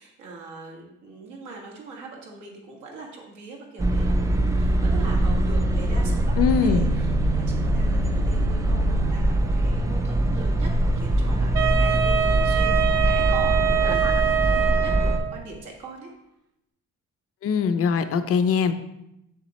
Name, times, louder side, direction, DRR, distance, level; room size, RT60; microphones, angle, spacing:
voice 1, 0.0-6.4 6.6-16.1, right 3 dB, 85° right, -1 dB, 1.9 m, -41 dB
sound 1, 3.8-15.2, right 1 dB, 10° right, 0.4 m, -22 dB
voice 2, 6.4-6.9 17.4-18.7, left 6 dB, 50° left, 10 dB, 0.5 m, -22 dB
Wind instrument woodwind instrument, 11.5-15.4, right 9 dB, 55° right, 0.9 m, -24 dB
7.2 x 7.0 x 3.0 m, 0.84 s
cardioid pair, 160°, 29 cm